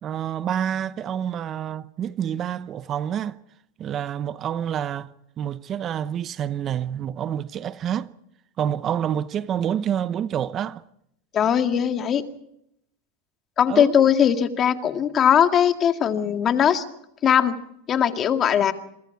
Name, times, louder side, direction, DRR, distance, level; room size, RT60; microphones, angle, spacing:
voice 1, 0.0-3.4 3.8-5.1 5.4-8.1 8.6-10.8 13.7-14.1, right 9 dB, 30° right, 0.8 m, -28 dB
voice 2, 11.3-12.2 13.6-16.8 17.2-17.6 17.9-18.7, left 9 dB, 30° left, 2.0 m, -20 dB
27.0 x 24.0 x 4.8 m
supercardioid pair, 130°, 0 cm